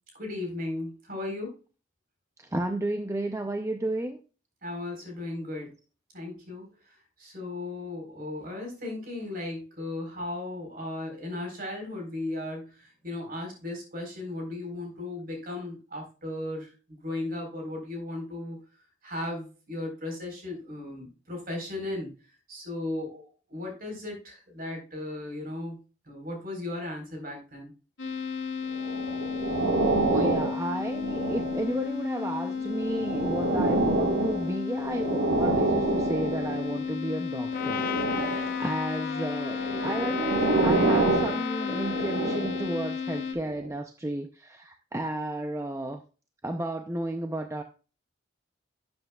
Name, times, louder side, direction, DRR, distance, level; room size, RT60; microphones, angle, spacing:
voice 1, 0.1-1.5 4.6-5.7 6.1-6.7 7.2-16.7 17.0-18.6 19.0-22.1 22.5-25.8 26.1-27.7, left 2 dB, 45° right, 2 dB, 4.1 m, -36 dB
voice 2, 2.4-4.2 30.1-46.0 46.4-47.6, right 1 dB, 15° right, 6 dB, 0.5 m, -33 dB
sound 1, 28.0-43.3, left 6 dB, 65° left, 2.2 m, -33 dB
sound 2, 28.8-31.9 32.5-36.8 37.5-38.6 39.5-42.8 43.5-43.7, right 2 dB, 70° right, 1.4 m, -28 dB
Trumpet, 37.5-42.4, left 8 dB, 45° left, 0.7 m, -35 dB
12.0 x 8.0 x 2.3 m, 0.34 s
head